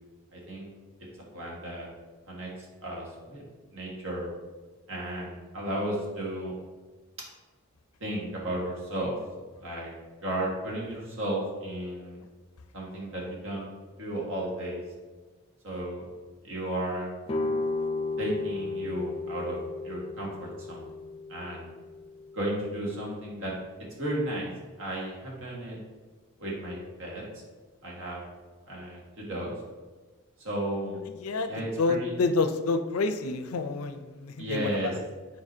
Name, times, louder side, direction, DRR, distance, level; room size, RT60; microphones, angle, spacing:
voice 1, 0.3-0.7 1.3-1.9 2.3-2.5 2.8-3.4 3.7-4.3 4.9-6.5 8.0-9.2 9.6-9.9 10.2-12.2 12.7-13.7 14.0-14.8 15.6-16.0 16.4-17.1 18.2-20.9 21.3-21.7 22.3-23.6 24.0-24.5 24.8-25.8 26.4-27.2 27.8-28.2 28.7-29.5 30.4-31.0 31.5-32.1 34.4-34.9, right 1 dB, 60° right, -3 dB, 1.7 m, -34 dB
sound 1, 17.3-23.0, left 3 dB, 25° left, 0.5 m, -34 dB
voice 2, 31.2-34.9, left 3 dB, 75° left, 9 dB, 0.5 m, -28 dB
7.4 x 4.7 x 2.7 m, 1.3 s
head